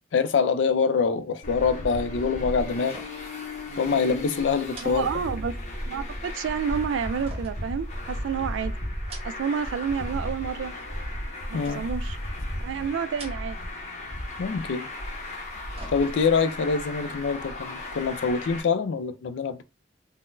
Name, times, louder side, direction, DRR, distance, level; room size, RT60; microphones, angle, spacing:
voice 1, 0.1-3.0 3.8-5.1 11.5-11.8 14.4-14.9 15.9-19.6, left 5 dB, 70° left, 0.4 m, -25 dB
Traffic noise roadway noise, 1.4-18.6, left 1 dB, 35° left, 0.6 m, -35 dB
sound 1, 2.9-3.4 3.7-3.8 4.7-5.8 7.2-8.4 8.9-9.7 10.0-10.6 11.6-12.1 13.0-13.8 14.1-14.2 15.3-16.5 16.9-17.0, right 2 dB, 30° right, 0.7 m, -47 dB
voice 2, 4.8-5.5 5.9-8.7 9.2-10.7 11.5-12.2 12.6-13.6, right 7 dB, 75° right, 0.3 m, -29 dB
3.8 x 2.1 x 2.5 m
head